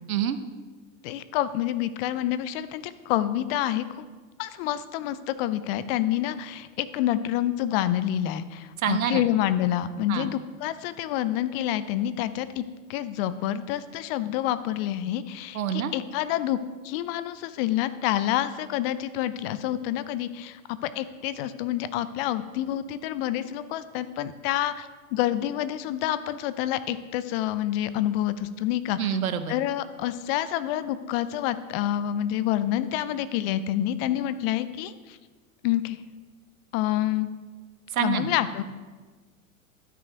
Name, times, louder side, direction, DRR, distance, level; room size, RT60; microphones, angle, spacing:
voice 1, 1.0-4.1 4.4-12.6 12.9-16.6 16.8-29.2 29.5-35.2 35.6-36.0 36.7-37.3 38.0-38.6, left 12 dB, 45° left, 13 dB, 0.6 m, -28 dB
voice 2, 8.8-9.2 10.1-10.3 15.5-15.9 29.0-29.5 37.9-38.3, right 9 dB, 75° right, 10 dB, 0.9 m, -27 dB
12.0 x 6.2 x 4.6 m, 1.4 s
hypercardioid pair, 95°, 42 cm